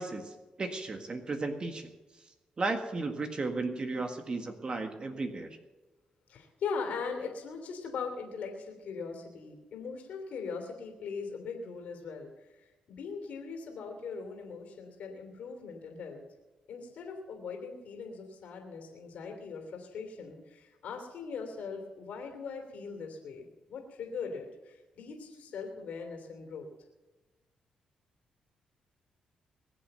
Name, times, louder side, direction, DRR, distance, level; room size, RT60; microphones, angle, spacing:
voice 1, 0.0-1.9 2.6-5.6, right 3 dB, 40° right, 5 dB, 1.7 m, -34 dB
voice 2, 6.3-16.2 16.7-26.7, left 5 dB, 75° left, 3 dB, 3.1 m, -40 dB
21.5 x 7.6 x 8.0 m, 1.1 s
cardioid pair, 80°, 3 cm